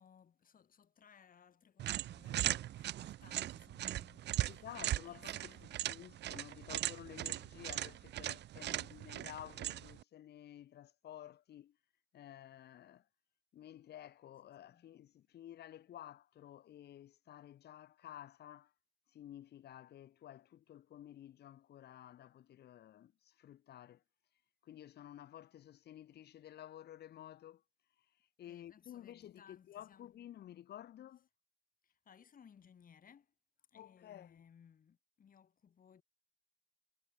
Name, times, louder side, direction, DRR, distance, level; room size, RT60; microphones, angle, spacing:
voice 1, 0.0-4.7 5.1-5.7 8.6-9.0 14.6-14.9 28.4-30.1 31.8-33.3 33.7-36.0, left 7 dB, 50° left, 7.7 m, -63 dB
sound 1, 1.8-10.0, right 13 dB, 75° right, 0.7 m, -39 dB
voice 2, 4.5-11.8 12.1-13.1 13.5-18.7 19.1-24.0 24.6-27.6 28.4-31.3 33.7-34.3, left 11 dB, 70° left, 1.0 m, -53 dB
cardioid pair, 100°, 18 cm